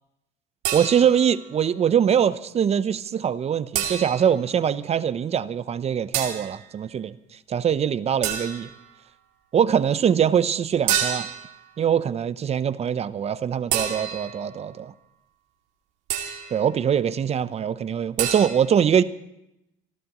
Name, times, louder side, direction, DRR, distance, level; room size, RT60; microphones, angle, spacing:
sound 1, 0.6-1.3 3.7-4.4 6.1-6.5 8.2-8.8 10.9-11.5 13.7-14.4 16.1-16.6 18.2-18.5, right 10 dB, 85° right, 2.5 m, -28 dB
voice 1, 0.7-7.2 7.5-8.7 9.5-11.3 11.8-14.9 16.5-19.0, right 8 dB, 40° right, 0.8 m, -23 dB
29.5 x 12.5 x 3.1 m
supercardioid pair, 90°, 17 cm